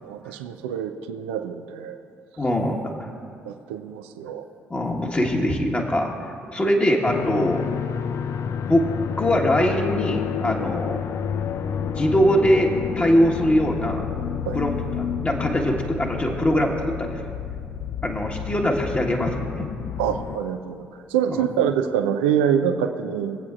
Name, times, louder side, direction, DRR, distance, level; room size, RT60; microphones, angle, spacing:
voice 1, 0.0-2.0 3.4-4.4 14.5-14.6 20.0-23.4, right 8 dB, 75° right, 8 dB, 0.5 m, -25 dB
voice 2, 2.4-2.7 3.0-3.1 4.7-6.1 6.5-7.6 8.7-8.8 9.2-11.0 11.9-14.0 14.5-14.7 15.2-17.2 18.0-19.7 21.3-21.4, equal, 20° left, 0 dB, 1.5 m, -22 dB
sound 1, 7.1-20.4, left 8 dB, 50° left, 0.5 m, -30 dB
22.0 x 8.3 x 2.5 m, 2.3 s
figure-of-eight pair, 45°, 6 cm